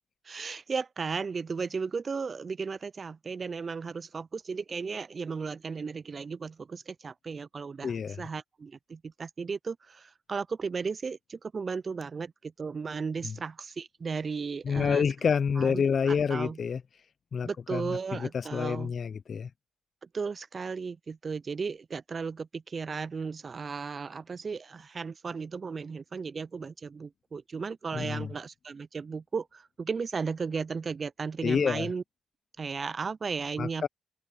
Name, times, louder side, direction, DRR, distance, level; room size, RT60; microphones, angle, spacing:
voice 1, 0.2-15.1 15.6-16.6 17.4-18.9 20.1-32.0 32.6-33.9, right 5 dB, 45° right, 0.3 m, -35 dB
voice 2, 7.8-8.2 13.2-13.3 14.6-16.8 17.3-19.5 27.9-28.3 31.4-31.9 33.6-33.9, left 6 dB, 55° left, 0.5 m, -28 dB
supercardioid pair, 60°, 0 cm